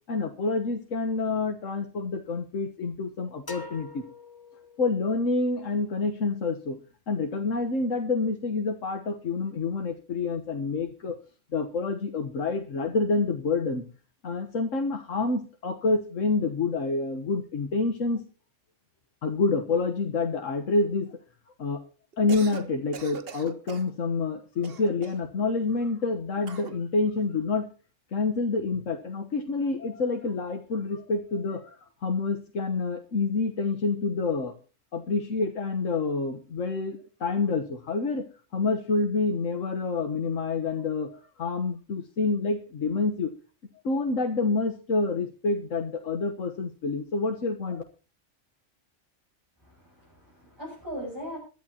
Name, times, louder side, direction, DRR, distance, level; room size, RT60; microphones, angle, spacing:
voice 1, 0.1-4.0 4.8-6.8 7.1-11.2 11.5-13.8 14.2-18.2 19.2-21.1 21.6-21.8 22.2-27.7 28.1-34.5 34.9-38.3 38.5-43.3 43.8-47.8, left 3 dB, 85° left, 5 dB, 1.6 m, -28 dB
sound 1, 3.5-5.2, left 3 dB, 20° left, 1.1 m, -44 dB
Cough, 22.1-22.7 22.9-23.9 24.6-25.3 26.4-26.8, right 5 dB, 55° right, 1.3 m, -40 dB
voice 2, 49.6-51.4, equal, 20° right, -7 dB, 7.9 m, -39 dB
22.0 x 11.5 x 2.9 m, 0.35 s
omnidirectional pair, 1.3 m